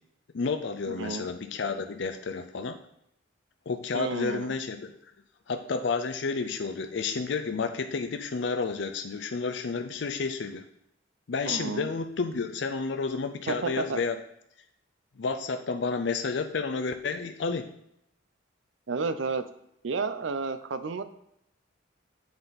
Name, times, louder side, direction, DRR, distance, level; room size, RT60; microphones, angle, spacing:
voice 1, 0.3-2.8 3.7-4.9 5.5-10.6 11.3-14.2 15.2-17.7, left 4 dB, 65° left, 7 dB, 0.5 m, -31 dB
voice 2, 0.9-1.3 3.9-4.5 11.5-11.9 13.5-14.0 18.9-19.4 19.8-21.0, right 4 dB, 75° right, 12 dB, 0.5 m, -31 dB
7.9 x 5.2 x 4.0 m, 0.78 s
head